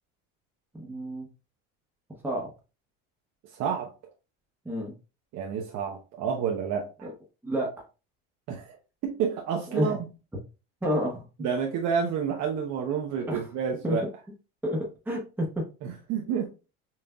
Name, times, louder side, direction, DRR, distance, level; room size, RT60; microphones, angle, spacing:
voice 1, 0.7-1.3 2.2-2.5 4.6-4.9 7.4-7.7 9.7-9.9 10.8-11.2 13.3-13.4 13.8-14.0 14.6-15.6, equal, 5° right, -2 dB, 1.0 m, -29 dB
voice 2, 3.5-3.9 5.3-7.1 8.5-8.8 9.0-10.0 11.4-14.1 15.8-16.5, right 7 dB, 60° right, 1 dB, 0.8 m, -29 dB
5.6 x 2.6 x 2.3 m, 0.31 s
cardioid pair, 120°, 30 cm